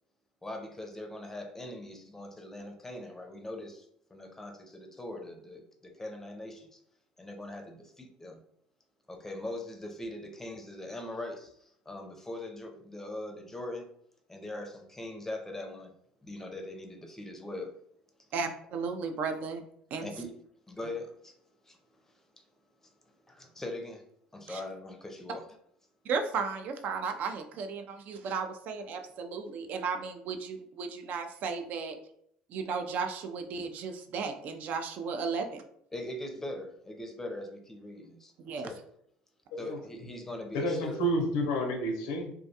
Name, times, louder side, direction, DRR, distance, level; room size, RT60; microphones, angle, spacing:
voice 1, 0.4-6.8 7.2-8.4 9.1-13.9 14.3-15.9 16.2-17.7 20.0-20.3 20.7-21.3 21.6-22.2 22.8-24.0 24.3-25.4 35.9-38.8 39.6-41.0, left 1 dB, 15° left, 4 dB, 0.5 m, -41 dB
voice 2, 18.3-19.6 19.9-20.1 24.5-24.6 26.1-32.0 32.5-35.6 38.4-38.7, right 5 dB, 60° right, 7 dB, 0.4 m, -34 dB
voice 3, 40.5-42.3, equal, 85° left, 1 dB, 0.6 m, -30 dB
2.4 x 2.2 x 2.7 m, 0.69 s
supercardioid pair, 85°, 3 cm